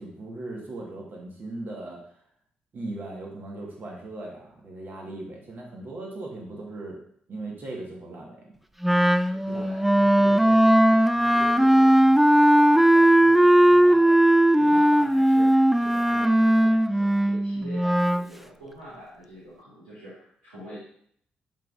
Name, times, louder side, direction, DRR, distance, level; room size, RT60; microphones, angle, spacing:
voice 1, 0.0-2.0 2.7-7.0 7.3-8.4 9.5-9.6, right 2 dB, 50° right, -1 dB, 1.6 m, -38 dB
Wind instrument woodwind instrument, 8.8-18.3, right 1 dB, 5° right, 0.3 m, -18 dB
voice 2, 9.3-15.5 15.8-20.8, right 1 dB, 85° right, -10 dB, 1.7 m, -44 dB
11.0 x 3.7 x 2.5 m, 0.63 s
hypercardioid pair, 40°, 4 cm